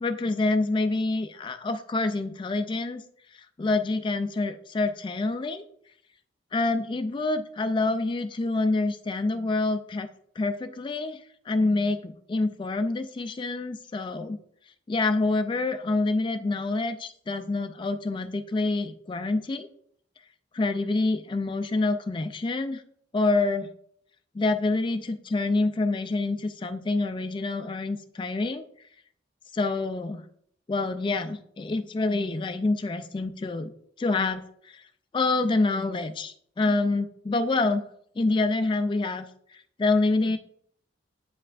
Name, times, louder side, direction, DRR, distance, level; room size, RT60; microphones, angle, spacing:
voice 1, 0.0-3.0 3.3-5.6 6.5-10.1 10.4-14.4 14.9-19.7 20.5-22.8 23.1-23.7 24.3-28.6 29.5-30.2 30.7-33.7 34.0-34.8 35.1-37.8 38.2-40.4, left 3 dB, 25° left, 9 dB, 0.3 m, -27 dB
8.5 x 5.4 x 2.4 m, 0.66 s
head